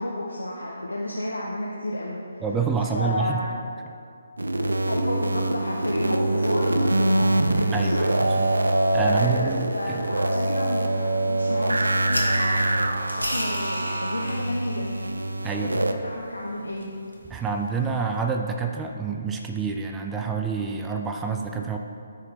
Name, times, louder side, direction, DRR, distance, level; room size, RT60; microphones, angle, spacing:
voice 1, 0.0-2.4 2.9-3.5 4.9-8.1 9.0-14.9 15.6-16.9, left 1 dB, 80° left, -3 dB, 0.9 m, -31 dB
voice 2, 2.4-3.5 7.7-8.6 8.9-10.1 15.4-15.7 17.3-21.8, right 5 dB, 10° right, 3 dB, 0.4 m, -28 dB
sound 1, 4.4-15.9, right 1 dB, 75° right, 0.5 m, -24 dB
sound 2, 12.0-18.2, equal, 90° right, 1.4 m, -37 dB
14.0 x 4.9 x 3.5 m, 2.4 s
figure-of-eight pair, 140°, 0 cm